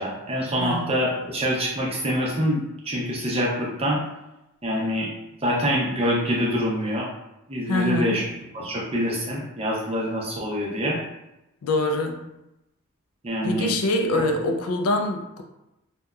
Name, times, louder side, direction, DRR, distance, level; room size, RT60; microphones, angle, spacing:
voice 1, 0.0-4.0 4.6-5.1 5.4-7.1 7.5-8.2 8.5-11.0 13.2-13.7 14.1-14.2, equal, 25° right, -3 dB, 0.5 m, -25 dB
voice 2, 7.7-8.3 11.6-12.3 13.4-15.4, left 1 dB, 85° left, 4 dB, 0.4 m, -24 dB
2.7 x 2.1 x 2.3 m, 0.91 s
head